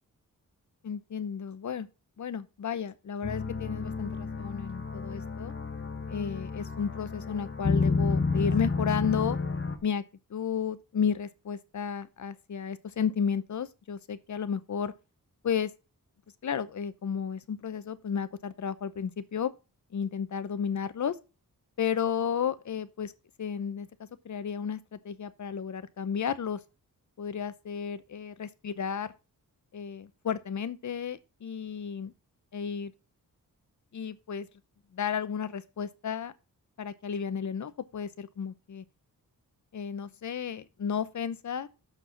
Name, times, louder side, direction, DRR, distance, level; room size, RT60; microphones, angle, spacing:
voice 1, 0.8-1.9 2.2-5.5 6.1-9.4 9.8-10.0 10.3-14.9 15.4-15.7 16.4-19.5 19.9-21.2 21.8-23.1 23.4-23.9 24.2-26.6 27.2-29.1 29.7-32.1 32.5-32.9 33.9-34.5 34.9-36.3 36.8-38.8 39.7-41.7, left 7 dB, 55° left, 0.9 m, -33 dB
sound 1, 3.2-9.8, left 4 dB, 35° left, 1.3 m, -30 dB
6.9 x 6.1 x 7.0 m
wide cardioid pair, 135°, 34 cm